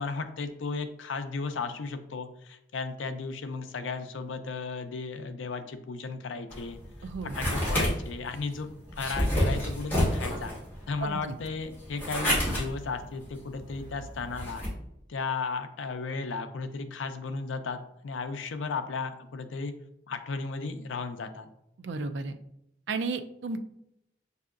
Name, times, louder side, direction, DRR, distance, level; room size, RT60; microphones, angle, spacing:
voice 1, 0.0-10.5 10.9-14.6 15.1-19.7 20.1-21.5, left 4 dB, 80° left, 8 dB, 0.5 m, -35 dB
sound 1, 6.5-14.7, equal, 10° left, 1.6 m, -30 dB
voice 2, 7.0-7.5 11.0-11.3 21.8-22.4 22.9-23.6, right 4 dB, 70° right, 9 dB, 0.4 m, -33 dB
6.6 x 2.7 x 2.5 m, 0.79 s
head